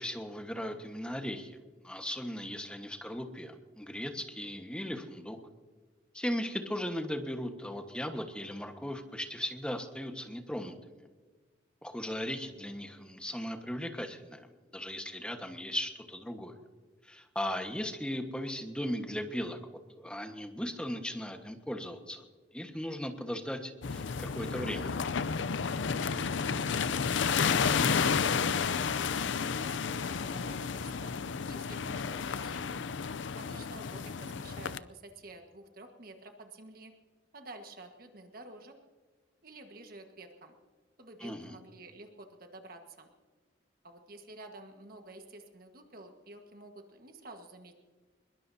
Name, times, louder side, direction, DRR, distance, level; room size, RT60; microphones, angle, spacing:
voice 1, 0.0-1.6 1.8-5.4 6.1-10.8 11.8-14.5 14.7-16.5 17.0-22.2 22.5-25.0 41.2-41.6, equal, 5° left, 5 dB, 1.3 m, -37 dB
sound 1, 23.8-34.8, left 6 dB, 80° left, 0.5 m, -31 dB
voice 2, 26.6-28.6 28.9-31.1 31.5-32.7 33.3-36.9 37.3-38.8 39.4-40.5 41.0-43.1 43.8-47.7, right 2 dB, 50° right, 5 dB, 1.5 m, -50 dB
22.5 x 21.5 x 2.8 m, 1.4 s
head